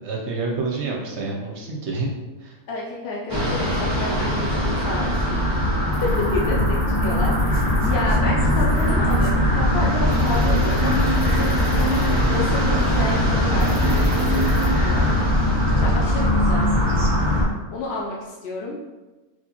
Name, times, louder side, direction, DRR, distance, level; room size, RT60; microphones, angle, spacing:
voice 1, 0.0-2.1 2.4-2.6, right 3 dB, 60° right, -1 dB, 0.8 m, -28 dB
voice 2, 2.7-5.4 6.0-15.1 15.8-16.7 17.7-18.8, left 2 dB, 65° left, -3 dB, 0.6 m, -30 dB
sound 1, 3.3-17.5, left 1 dB, 25° right, 0.5 m, -20 dB
sound 2, 8.3-11.3 12.2-15.0, left 3 dB, 90° left, 1.1 m, -35 dB
sound 3, 8.7-17.4, equal, 20° left, 0.9 m, -41 dB
4.2 x 2.4 x 2.9 m, 1.2 s
omnidirectional pair, 1.5 m